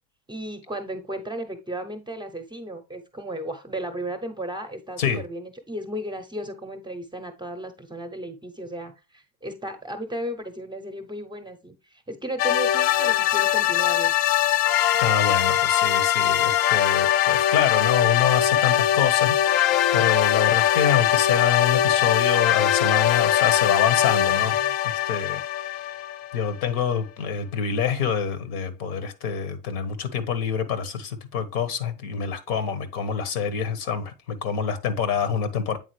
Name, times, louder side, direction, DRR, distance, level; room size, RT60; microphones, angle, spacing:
voice 1, 0.3-14.1, right 1 dB, 10° right, 0.6 m, -34 dB
sound 1, 12.4-26.6, left 12 dB, 50° left, 0.5 m, -21 dB
voice 2, 15.0-19.3 19.9-24.6 24.8-25.4 25.7-25.8 26.3-35.8, left 7 dB, 75° left, 1.3 m, -26 dB
8.4 x 3.7 x 3.2 m
supercardioid pair, 105°, 46 cm